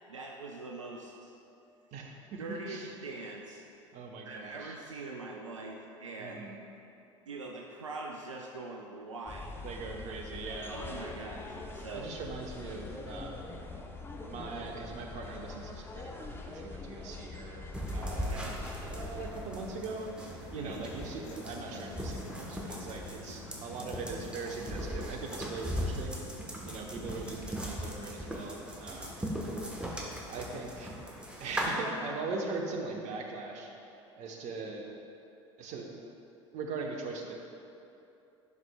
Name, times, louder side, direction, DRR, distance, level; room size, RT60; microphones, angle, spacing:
voice 1, 0.1-1.3 2.4-3.6 4.2-6.4 7.3-9.6 10.1-10.2 10.7-12.1 18.2-18.6 20.5-20.8, right 3 dB, 90° right, 0 dB, 0.5 m, -43 dB
voice 2, 1.9-2.4 2.7-2.9 3.9-4.8 6.2-6.6 9.6-10.7 11.9-13.7 14.3-20.1 20.5-26.2 26.6-29.3 30.3-31.0 31.4-33.7 34.2-34.9 35.6-35.9 36.5-37.3, right 3 dB, 50° right, 1 dB, 1.0 m, -41 dB
sound 1, 9.3-19.3, left 3 dB, 15° left, 0.7 m, -44 dB
sound 2, 17.7-31.7, equal, 5° right, 1.1 m, -39 dB
Human voice / Guitar, 20.3-28.3, left 7 dB, 65° left, 0.5 m, -54 dB
11.0 x 6.1 x 2.3 m, 2.8 s
figure-of-eight pair, 70°, 16 cm